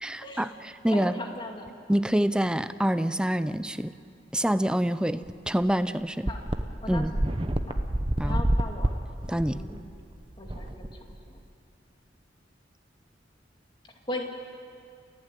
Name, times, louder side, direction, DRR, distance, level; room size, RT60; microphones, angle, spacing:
voice 1, 0.0-1.1 1.9-3.9 4.3-6.3 6.9-7.1 8.2-8.4 9.3-9.6, equal, 5° right, 12 dB, 0.5 m, -26 dB
voice 2, 0.9-1.7 6.3-6.5 6.8-7.9 8.2-8.9 9.5-9.9 10.4-11.4 14.1-14.2, left 1 dB, 25° left, 2 dB, 2.4 m, -38 dB
sound 1, 5.2-5.3 5.6-5.7 6.3-11.4, right 1 dB, 30° right, 0.9 m, -29 dB
29.0 x 15.0 x 9.1 m, 2.5 s
head